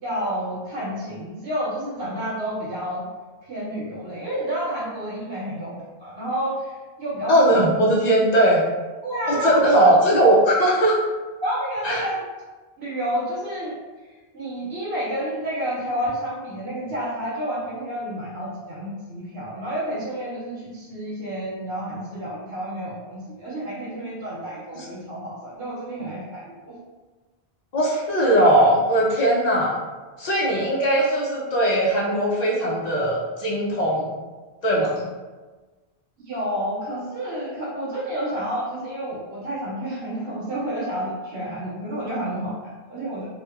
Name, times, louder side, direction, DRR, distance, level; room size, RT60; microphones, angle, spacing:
voice 1, 0.0-3.1 3.5-7.6 9.0-10.0 11.4-12.3 12.8-13.8 14.3-26.8 36.2-43.3, equal, 85° right, -7 dB, 1.0 m, -30 dB
voice 2, 7.3-8.7 9.3-11.0 11.8-12.0 24.7-24.8 27.7-29.8 30.2-34.1 34.6-35.1, right 1 dB, 55° left, -4 dB, 0.5 m, -19 dB
2.8 x 2.1 x 2.3 m, 1.3 s
omnidirectional pair, 1.0 m